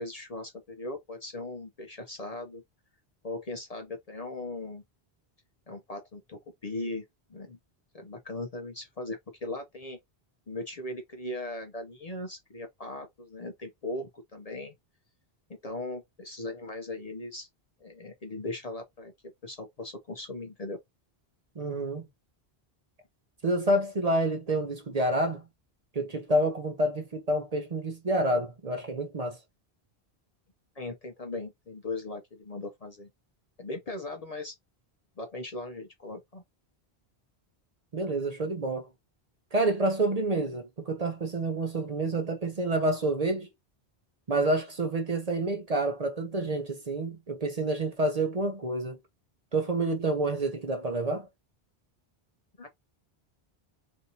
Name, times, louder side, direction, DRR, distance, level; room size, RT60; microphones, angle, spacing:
voice 1, 0.0-2.6 3.2-4.8 5.7-7.0 7.3-7.6 7.9-10.0 10.5-14.7 15.5-17.5 17.8-19.1 19.4-20.8 30.8-33.1 33.6-34.5 35.2-36.4 52.6-52.7, left 2 dB, 45° left, 0.6 m, -38 dB
voice 2, 21.6-22.0 23.4-25.4 25.9-29.4 37.9-38.9 39.5-43.5 44.3-49.0 49.5-51.3, right 2 dB, 40° right, 0.7 m, -28 dB
3.4 x 2.6 x 2.7 m
omnidirectional pair, 1.1 m